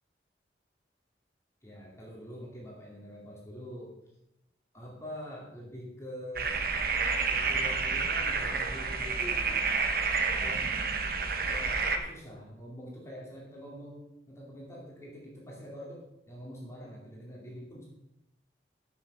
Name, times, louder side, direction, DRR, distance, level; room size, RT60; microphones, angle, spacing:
voice 1, 1.6-3.9 4.7-6.6 7.3-9.6 10.3-10.7 11.4-17.9, equal, 15° left, -4 dB, 2.4 m, -45 dB
sound 1, 6.4-12.0, right 4 dB, 55° right, 1.1 m, -29 dB
13.0 x 6.3 x 5.5 m, 0.86 s
head